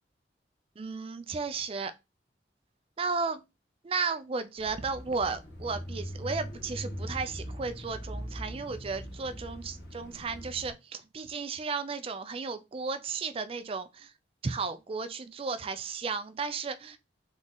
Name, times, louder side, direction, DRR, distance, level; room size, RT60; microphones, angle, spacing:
voice 1, 0.8-1.9 3.0-3.4 3.8-14.1 14.4-17.0, right 4 dB, 30° right, 0.4 m, -34 dB
Bicycle / Mechanisms, 4.6-10.7, equal, 90° left, 1.3 m, -41 dB
3.8 x 3.0 x 3.8 m
head